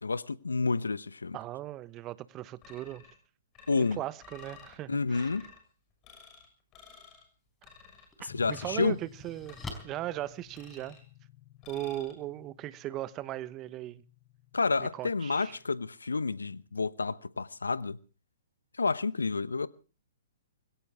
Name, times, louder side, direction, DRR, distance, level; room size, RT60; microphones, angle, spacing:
voice 1, 0.0-1.4 3.7-4.0 4.9-5.5 8.2-9.0 14.5-18.0 18.8-19.7, left 4 dB, 85° left, 1.1 m, -30 dB
voice 2, 1.3-3.0 3.7-5.3 8.2-9.6 9.8-11.0 11.7-14.0 14.8-15.6, right 14 dB, 25° right, 1.1 m, -38 dB
sound 1, 2.6-3.2 3.5-4.8 5.1-5.6 6.0-6.5 6.7-7.2 7.6-8.1 8.5-8.9 9.5-10.0 10.5-11.1 11.6-12.1, left 6 dB, 30° left, 6.3 m, -53 dB
sound 2, 7.4-7.5 8.1-11.1, left 2 dB, 10° left, 4.3 m, -46 dB
sound 3, 8.3-15.9, left 16 dB, 55° left, 4.1 m, -55 dB
21.5 x 17.5 x 3.6 m
figure-of-eight pair, 125°, 0 cm